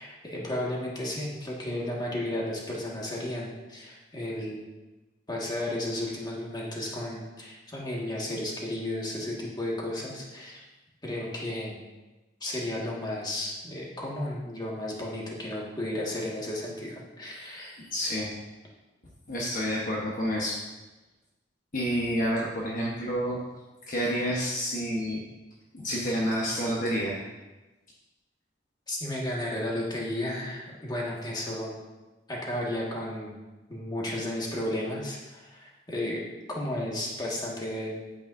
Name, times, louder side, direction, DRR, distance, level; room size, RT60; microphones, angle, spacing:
voice 1, 0.0-4.6 5.3-10.7 11.0-11.8 12.4-17.8 28.9-31.8 32.3-33.3 33.7-36.2 36.5-38.0, left 1 dB, 20° left, -4 dB, 1.7 m, -33 dB
voice 2, 17.6-18.3 19.3-20.5 21.7-23.4 23.9-25.2 25.7-27.2, equal, 45° left, -4 dB, 1.1 m, -29 dB
8.7 x 8.7 x 2.6 m, 1.1 s
head